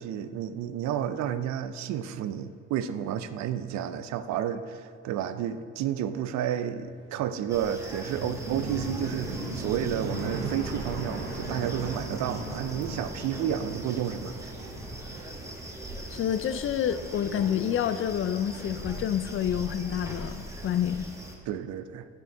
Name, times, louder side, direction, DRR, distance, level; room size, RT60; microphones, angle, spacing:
voice 1, 0.0-14.5 21.5-22.1, right 9 dB, 65° right, 12 dB, 0.5 m, -31 dB
sound 1, 6.8-16.8 17.0-17.9, right 2 dB, 85° right, 1.1 m, -38 dB
sound 2, 7.5-21.4, right 1 dB, 10° right, 1.1 m, -41 dB
voice 2, 16.1-21.1, left 9 dB, 45° left, 11 dB, 0.4 m, -28 dB
9.0 x 6.1 x 3.4 m, 2.1 s
supercardioid pair, 60°, 30 cm